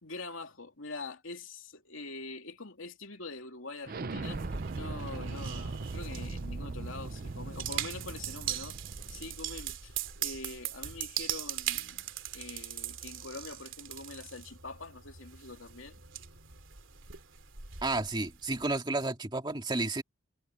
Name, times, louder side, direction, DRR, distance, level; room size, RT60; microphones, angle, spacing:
voice 1, 0.0-4.4 4.7-8.8 9.1-12.1 12.3-16.0, left 3 dB, 80° left, 2.9 m, -44 dB
Explosion, 3.9-9.4, right 3 dB, 45° right, 0.6 m, -39 dB
sound 1, 4.2-18.8, right 10 dB, 70° right, 2.8 m, -40 dB
voice 2, 17.8-20.0, right 2 dB, 20° right, 2.3 m, -31 dB
head